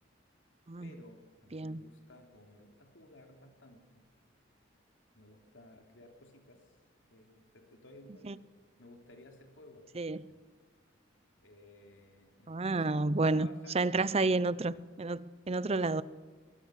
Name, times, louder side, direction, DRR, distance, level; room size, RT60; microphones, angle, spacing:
voice 1, 0.8-4.1 5.1-6.8 7.1-8.3 8.8-9.8 10.3-10.4 11.4-13.0 13.3-14.0, left 1 dB, 70° left, 4 dB, 3.3 m, -56 dB
voice 2, 1.5-1.8 8.2-8.3 10.0-10.2 12.5-13.5 13.7-16.0, right 3 dB, 30° right, 18 dB, 0.6 m, -30 dB
23.5 x 19.0 x 6.5 m, 1.5 s
head